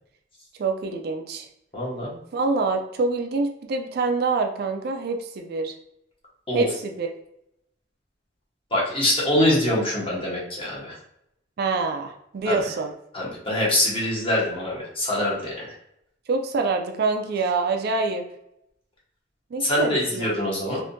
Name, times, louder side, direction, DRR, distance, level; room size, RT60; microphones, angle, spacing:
voice 1, 0.6-1.5 2.3-5.7 6.5-7.1 11.6-12.9 16.3-18.2 19.5-20.8, right 3 dB, 55° right, 4 dB, 0.4 m, -26 dB
voice 2, 1.7-2.2 6.5-6.7 8.7-10.9 12.4-12.6 13.1-15.7 19.6-20.8, left 1 dB, 30° left, -5 dB, 1.1 m, -24 dB
3.5 x 2.6 x 2.6 m, 0.79 s
head